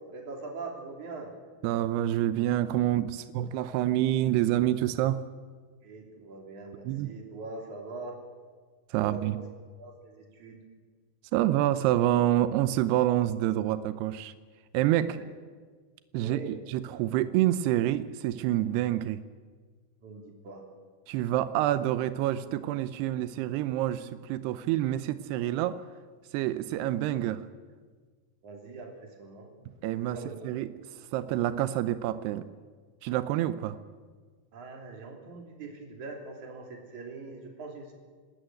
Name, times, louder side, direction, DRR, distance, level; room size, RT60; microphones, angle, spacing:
voice 1, 0.1-1.3 5.8-8.2 9.0-9.4 9.8-10.6 15.0-15.3 16.2-16.6 20.0-20.6 24.6-24.7 28.4-29.5 30.1-30.5 34.5-37.9, right 3 dB, 40° right, 1 dB, 4.1 m, -42 dB
voice 2, 1.6-5.2 6.9-7.2 8.9-9.4 11.3-14.3 14.7-15.2 16.1-19.2 21.1-25.8 26.3-27.4 29.8-30.2 30.4-30.7 31.1-32.4 33.0-33.8, right 13 dB, 90° right, 13 dB, 2.3 m, -27 dB
26.5 x 13.0 x 9.2 m, 1.5 s
omnidirectional pair, 5.6 m